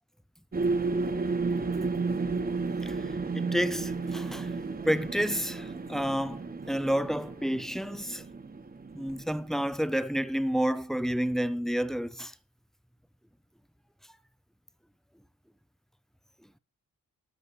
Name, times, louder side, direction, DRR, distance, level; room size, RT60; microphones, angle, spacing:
sound 1, 0.5-9.7, right 4 dB, 30° right, 1.2 m, -32 dB
voice 1, 3.3-4.5 4.8-8.2 8.9-12.3, equal, ahead, 0.4 m, -30 dB
12.5 x 6.9 x 4.3 m
wide cardioid pair, 110°, 33 cm